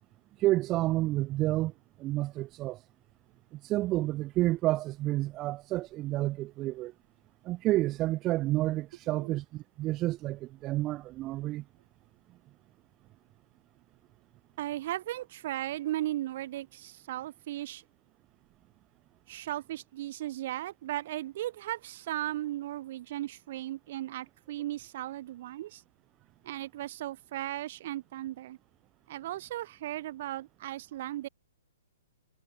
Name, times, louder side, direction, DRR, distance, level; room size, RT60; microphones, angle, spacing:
voice 1, 0.4-1.7 2.0-2.8 3.6-6.9 7.4-11.6, right 17 dB, 25° right, 0.6 m, -30 dB
voice 2, 14.6-17.8 19.3-25.8 26.4-28.6 29.1-31.3, right 14 dB, 45° right, 2.1 m, -36 dB
figure-of-eight pair, 120°, 0 cm